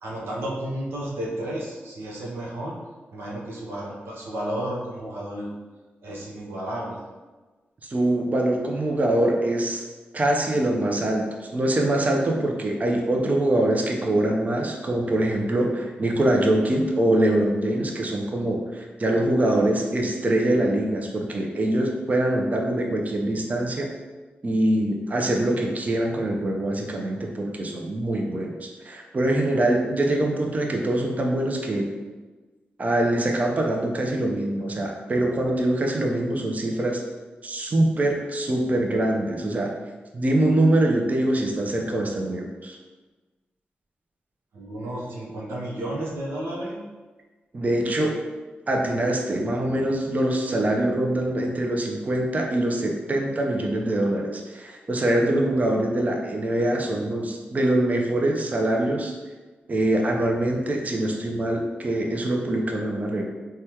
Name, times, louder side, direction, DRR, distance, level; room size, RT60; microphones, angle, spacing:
voice 1, 0.0-2.8 3.1-5.5 6.0-7.0 44.5-46.9, right 1 dB, 90° right, -4 dB, 0.7 m, -32 dB
voice 2, 7.9-9.8 10.1-23.9 24.4-31.9 32.8-37.0 37.4-39.7 40.1-42.8 47.5-48.2 48.7-59.1 59.7-63.2, right 1 dB, 40° right, 1 dB, 0.5 m, -24 dB
3.4 x 2.2 x 2.9 m, 1.3 s
cardioid pair, 65°, 4 cm